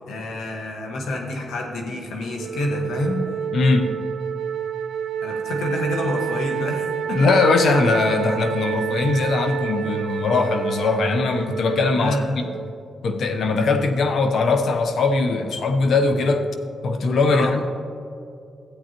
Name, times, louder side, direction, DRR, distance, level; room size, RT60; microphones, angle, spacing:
voice 1, 0.1-3.2 5.2-7.2 11.8-12.4 17.3-17.5, left 1 dB, 85° left, 1 dB, 1.4 m, -28 dB
Wind instrument woodwind instrument, 2.4-12.7, right 8 dB, 70° right, 0.8 m, -29 dB
voice 2, 3.5-4.0 7.1-12.2 12.4-12.6 13.0-16.5 16.8-17.6, left 3 dB, 70° left, 6 dB, 0.8 m, -20 dB
13.0 x 8.6 x 3.0 m, 2.5 s
cardioid pair, 65°, 0 cm